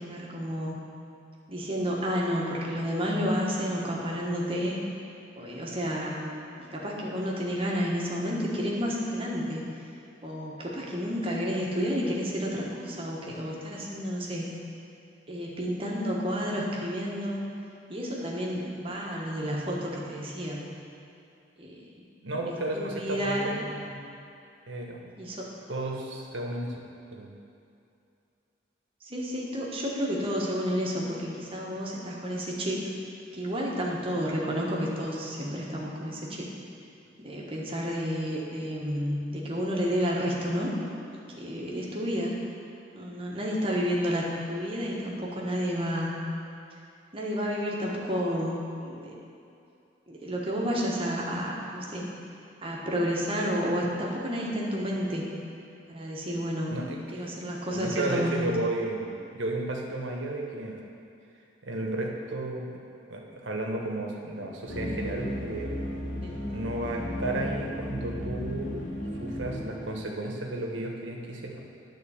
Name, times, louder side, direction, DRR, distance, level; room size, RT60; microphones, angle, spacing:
voice 1, 0.1-0.8 1.5-4.8 5.4-6.3 6.7-9.6 10.2-14.4 15.3-17.4 17.9-20.6 21.6-22.0 22.5-23.5 25.2-25.4 29.0-32.8 33.3-36.4 37.2-40.7 41.4-42.3 42.9-44.2 44.5-46.1 47.1-49.1 50.1-52.1 52.6-55.2 55.9-56.8 57.1-58.5 66.2-66.4, equal, 30° right, -3 dB, 1.2 m, -30 dB
voice 2, 22.2-24.0 24.7-25.0 25.7-26.7 27.1-27.4 56.7-57.3 57.7-60.8 61.6-62.7 63.1-65.8 66.5-68.8 69.2-71.6, right 2 dB, 85° right, 0 dB, 1.1 m, -33 dB
sound 1, 64.7-70.2, equal, 70° left, 1.6 m, -35 dB
9.6 x 3.8 x 7.1 m, 2.6 s
head